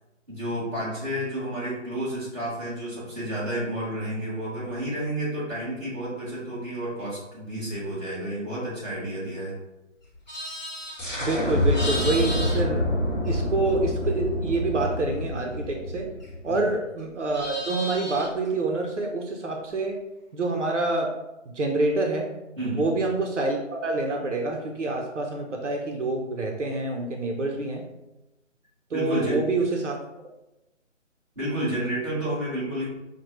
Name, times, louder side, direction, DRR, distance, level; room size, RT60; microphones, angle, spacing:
voice 1, 0.3-9.5 16.5-16.7 22.6-22.9 28.9-29.5 31.3-32.8, right 1 dB, 15° right, -12 dB, 1.4 m, -30 dB
Livestock farm animals working animals, 10.0-13.7 14.0-16.6 16.9-18.5, left 1 dB, 35° left, 0.7 m, -36 dB
sound 1, 11.0-16.5, left 1 dB, ahead, 0.9 m, -27 dB
voice 2, 11.2-12.9 13.3-16.1 16.4-20.0 20.3-21.1 21.5-22.3 22.8-27.9 28.9-30.0, right 2 dB, 70° right, 1 dB, 0.8 m, -27 dB
5.7 x 2.2 x 3.1 m, 0.97 s
hypercardioid pair, 175°, 38 cm